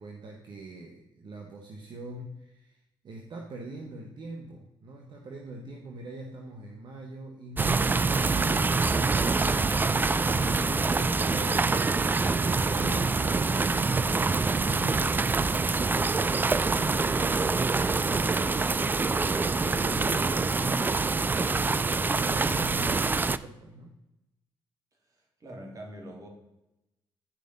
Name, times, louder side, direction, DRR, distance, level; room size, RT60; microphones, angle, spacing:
voice 1, 0.0-9.5 9.8-11.9 12.4-14.2 14.5-16.0 16.7-23.9, right 2 dB, 55° right, 1 dB, 1.2 m, -43 dB
sound 1, 7.6-23.4, right 4 dB, 20° right, 0.3 m, -25 dB
voice 2, 25.1-26.3, equal, 40° right, 1 dB, 2.6 m, -45 dB
10.0 x 5.1 x 5.3 m, 0.91 s
cardioid pair, 90°, 9 cm